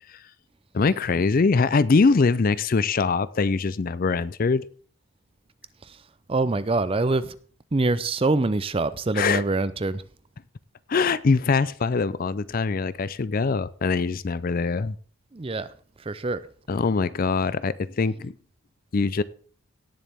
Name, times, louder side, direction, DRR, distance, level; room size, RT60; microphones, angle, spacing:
voice 1, 0.7-4.7 9.1-9.4 10.9-15.0 16.7-18.3 18.9-19.2, left 4 dB, 40° left, 0.4 m, -23 dB
voice 2, 6.3-7.3 7.7-10.0 15.3-15.7 16.1-16.4, right 2 dB, 25° right, 0.5 m, -24 dB
17.5 x 7.1 x 3.5 m
head